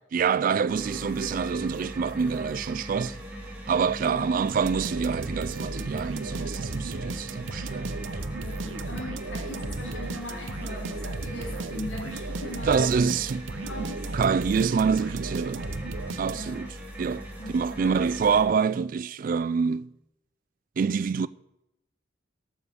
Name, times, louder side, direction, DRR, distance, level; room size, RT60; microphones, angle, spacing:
voice 1, 0.1-3.2 3.7-8.1 12.7-13.5 13.8-15.7 16.2-17.3 17.5-19.9 20.8-21.3, right 6 dB, 45° right, 0.3 m, -26 dB
sound 1, 0.7-18.5, right 1 dB, 10° right, 2.3 m, -40 dB
sound 2, 4.5-16.7, right 2 dB, 80° right, 0.7 m, -35 dB
voice 2, 8.4-13.2 13.6-14.2 16.3-16.7 17.4-18.3, left 1 dB, 80° left, 2.5 m, -40 dB
12.0 x 6.4 x 6.9 m
head